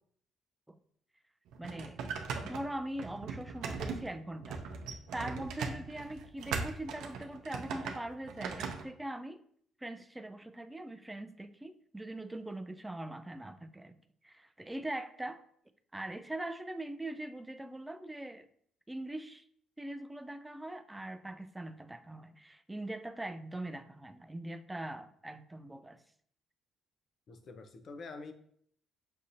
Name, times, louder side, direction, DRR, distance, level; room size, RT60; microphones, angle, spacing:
sound 1, 1.5-8.8, right 5 dB, 80° right, 0.5 m, -39 dB
voice 1, 1.6-2.0 2.4-4.6 5.1-9.4 9.8-14.0 14.2-15.4 15.9-18.5 18.9-19.4 19.8-26.0, right 1 dB, 10° right, 10 dB, 0.3 m, -42 dB
voice 2, 27.3-28.3, left 3 dB, 50° left, 6 dB, 0.6 m, -46 dB
6.2 x 2.7 x 2.6 m, 0.64 s
cardioid pair, 110°, 0 cm